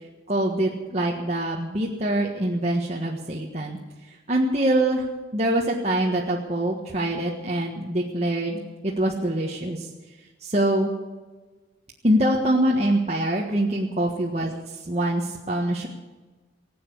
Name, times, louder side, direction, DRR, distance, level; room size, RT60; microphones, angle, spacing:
voice 1, 0.3-3.8 4.3-5.1 5.3-9.9 10.4-10.9 12.0-15.9, right 1 dB, 35° right, -2 dB, 1.5 m, -24 dB
19.0 x 8.6 x 8.4 m, 1.3 s
head